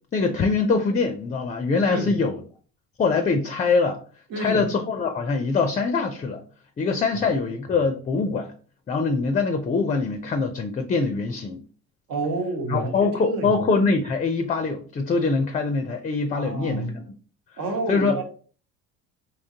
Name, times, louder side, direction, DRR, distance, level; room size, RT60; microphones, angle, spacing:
voice 1, 0.1-2.4 3.0-4.0 4.4-6.4 6.8-8.5 8.9-11.6 12.7-17.0 17.9-18.1, left 4 dB, 25° left, 0.4 m, -23 dB
voice 2, 4.3-4.6 7.8-7.9 12.1-13.6 16.4-16.9 17.6-18.2, right 2 dB, 70° right, 1.2 m, -29 dB
3.7 x 2.9 x 2.7 m
supercardioid pair, 80°, 34 cm